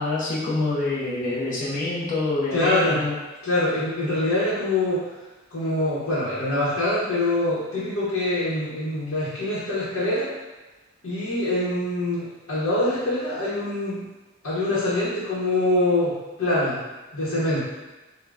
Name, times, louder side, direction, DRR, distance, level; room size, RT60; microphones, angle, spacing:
voice 1, 0.0-3.1, left 2 dB, 40° left, -7 dB, 0.8 m, -26 dB
voice 2, 2.5-3.0 3.4-5.0 5.5-10.3 11.0-14.0 14.4-16.8 17.1-17.6, left 1 dB, 70° left, -10 dB, 1.1 m, -24 dB
3.8 x 2.3 x 3.4 m, 1.1 s
head